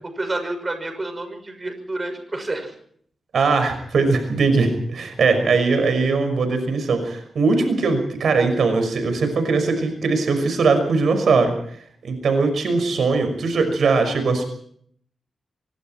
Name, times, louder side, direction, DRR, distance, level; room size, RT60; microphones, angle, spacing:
voice 1, 0.2-2.7, right 2 dB, 25° right, 7 dB, 6.3 m, -29 dB
voice 2, 3.3-11.5 12.0-14.4, right 4 dB, 70° right, 7 dB, 5.8 m, -20 dB
26.0 x 24.0 x 4.5 m, 0.64 s
wide cardioid pair, 110°, 0 cm